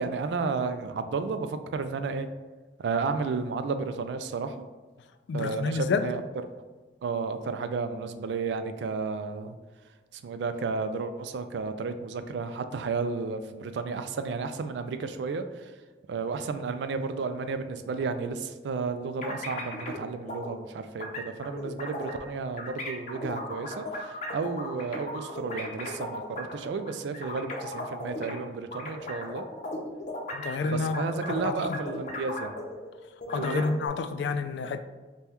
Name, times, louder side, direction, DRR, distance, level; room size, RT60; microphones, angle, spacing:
voice 1, 0.0-2.3 2.8-4.6 5.3-6.2 7.0-9.5 10.1-15.7 16.1-29.4 30.6-32.5 33.4-33.7, right 4 dB, 85° right, 10 dB, 0.3 m, -32 dB
voice 2, 5.3-6.1 30.3-31.0 31.4-31.8 33.3-34.8, left 4 dB, 85° left, 10 dB, 0.3 m, -29 dB
sound 1, 19.2-20.0 20.3-20.5 21.0-22.3 22.6-28.3 28.7-32.9 33.2-33.9, left 1 dB, 45° left, 0.6 m, -36 dB
5.2 x 2.3 x 2.9 m, 1.3 s
head